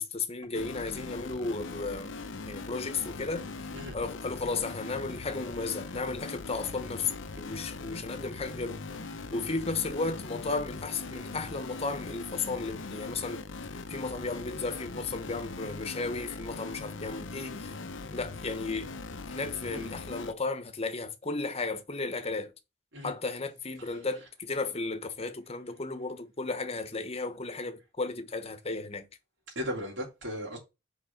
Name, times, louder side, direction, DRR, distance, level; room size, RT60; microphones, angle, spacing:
voice 1, 0.0-2.2 2.5-3.5 3.9-7.1 7.4-8.8 9.3-13.4 13.9-17.7 18.1-18.9 19.3-22.5 23.0-29.1, left 3 dB, 30° left, 1.0 m, -34 dB
sound 1, 0.5-20.3, left 3 dB, 90° left, 0.8 m, -41 dB
voice 2, 29.5-30.6, equal, 80° right, 3.3 m, -37 dB
5.4 x 4.8 x 5.8 m
head